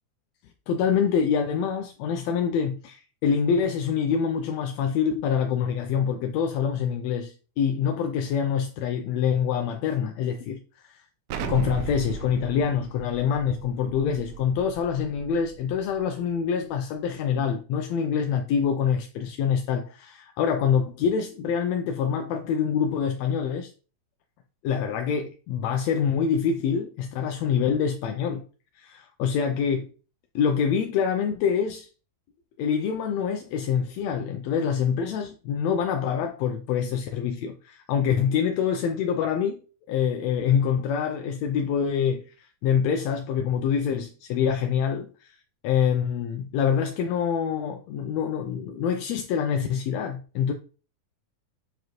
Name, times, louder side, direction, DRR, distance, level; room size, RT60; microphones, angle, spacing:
voice 1, 0.7-11.0 11.3-23.7 24.6-28.4 28.8-29.9 30.4-31.9 32.6-39.6 39.9-45.4 45.6-50.5, left 7 dB, 75° left, 1.6 m, -26 dB
Explosion, 11.3-16.0, right 5 dB, 75° right, 1.6 m, -36 dB
7.9 x 4.8 x 3.0 m
omnidirectional pair, 3.5 m